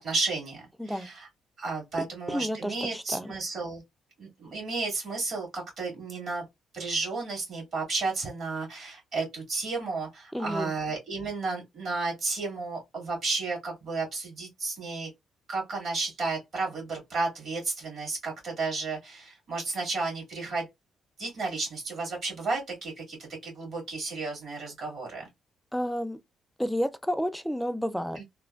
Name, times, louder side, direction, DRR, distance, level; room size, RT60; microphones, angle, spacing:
voice 1, 0.0-1.3 1.6-3.8 4.2-6.4 6.7-15.1 15.5-20.7 21.2-25.3 28.2-28.3, right 3 dB, 55° right, 2.0 m, -32 dB
voice 2, 2.0-3.3 10.3-10.7 25.7-26.2 26.6-28.2, equal, ahead, 0.4 m, -31 dB
3.2 x 2.2 x 2.3 m
cardioid pair, 90°, 0 cm